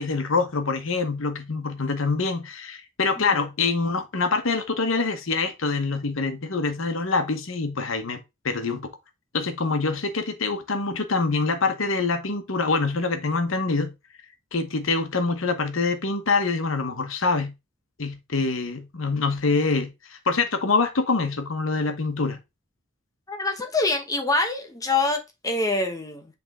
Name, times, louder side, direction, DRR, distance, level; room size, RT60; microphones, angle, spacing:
voice 1, 0.0-8.9 9.3-13.9 14.5-17.5 18.0-22.4, left 4 dB, 75° left, 1.0 m, -25 dB
voice 2, 23.3-26.3, left 3 dB, 20° left, 0.9 m, -25 dB
7.7 x 3.5 x 3.5 m
head